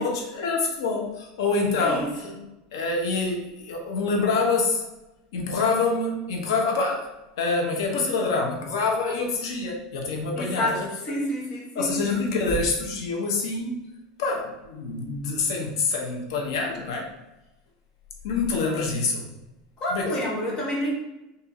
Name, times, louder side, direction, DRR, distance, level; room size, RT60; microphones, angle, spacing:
voice 1, 0.0-2.3 2.7-4.8 5.3-7.1 7.4-10.9 11.7-13.8 14.2-17.1 18.2-19.3 19.9-20.1, left 3 dB, 90° left, 0 dB, 1.0 m, -26 dB
voice 2, 1.7-2.5 10.3-12.3 19.8-20.9, equal, 30° left, -1 dB, 1.1 m, -29 dB
4.4 x 2.7 x 3.7 m, 0.97 s
supercardioid pair, 145°, 3 cm